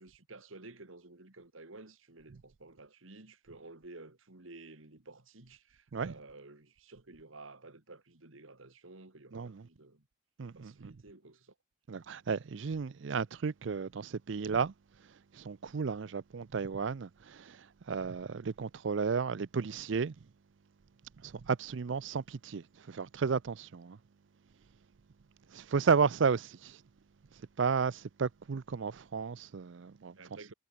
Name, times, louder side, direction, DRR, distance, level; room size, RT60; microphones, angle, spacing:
voice 1, 0.0-10.0 10.5-11.5 25.4-25.6 30.1-30.5, right 2 dB, 80° right, 2.3 m, -52 dB
voice 2, 9.3-9.6 10.4-10.9 11.9-14.7 15.4-17.6 17.9-20.1 21.2-24.0 25.5-26.8 27.6-30.1, right 5 dB, 65° right, 0.5 m, -33 dB
head